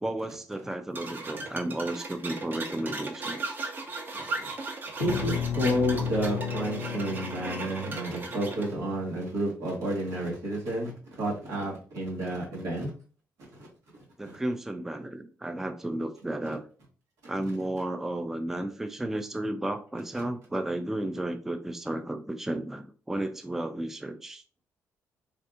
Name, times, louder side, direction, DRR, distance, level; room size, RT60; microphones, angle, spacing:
voice 1, 0.0-3.6 14.2-16.6 17.3-24.4, right 1 dB, 5° right, 7 dB, 0.3 m, -33 dB
sound 1, 0.9-8.7, right 3 dB, 35° right, 0.7 m, -37 dB
voice 2, 4.1-4.5 5.0-12.9 13.6-13.7 14.2-14.4, right 1 dB, 85° right, -3 dB, 1.6 m, -31 dB
sound 2, 5.0-9.4, left 7 dB, 70° left, 0.4 m, -34 dB
3.4 x 2.7 x 2.5 m, 0.38 s
cardioid pair, 120°, 6 cm